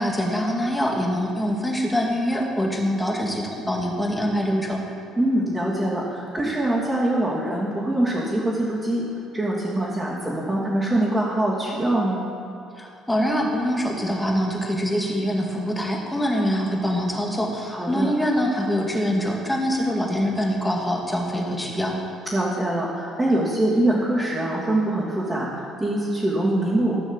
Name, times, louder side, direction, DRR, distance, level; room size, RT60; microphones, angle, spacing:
voice 1, 0.0-4.8 12.8-22.0, equal, 5° left, -1 dB, 2.0 m, -24 dB
voice 2, 5.2-9.0 9.3-12.2 17.7-18.1 22.3-27.0, right 1 dB, 15° right, -9 dB, 2.8 m, -23 dB
15.0 x 6.3 x 7.3 m, 2.4 s
cardioid pair, 125°, 0 cm